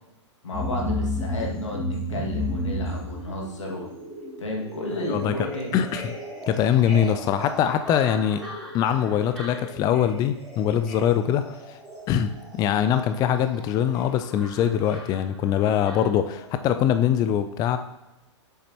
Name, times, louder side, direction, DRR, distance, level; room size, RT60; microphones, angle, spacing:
voice 1, 0.4-3.9 4.4-5.8, left 1 dB, 85° left, -1 dB, 2.0 m, -32 dB
sound 1, 0.5-16.6 16.9-17.0, left 1 dB, ahead, 2.5 m, -34 dB
voice 2, 5.7-6.2 6.5-8.4 8.7-11.8 12.1-17.8, left 9 dB, 25° left, 9 dB, 0.4 m, -23 dB
7.5 x 6.9 x 2.9 m, 0.96 s
hypercardioid pair, 115°, 15 cm